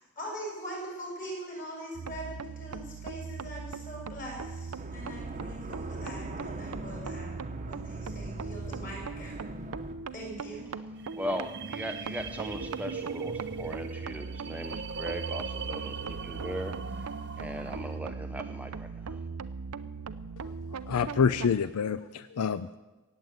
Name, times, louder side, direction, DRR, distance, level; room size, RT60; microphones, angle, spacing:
voice 1, 0.0-7.4 7.7-9.3 10.1-10.6, right 1 dB, 40° left, -1 dB, 6.1 m, -42 dB
sound 1, 1.9-21.6, right 5 dB, 80° right, 0.6 m, -40 dB
sound 2, 4.8-10.0, right 1 dB, 35° right, 1.0 m, -41 dB
sound 3, 11.0-18.0, right 5 dB, 50° right, 0.8 m, -39 dB
voice 2, 11.2-19.2, equal, 5° right, 6 dB, 0.5 m, -39 dB
voice 3, 20.7-22.8, left 6 dB, 80° left, 14 dB, 0.4 m, -27 dB
17.0 x 7.9 x 9.2 m, 1.1 s
head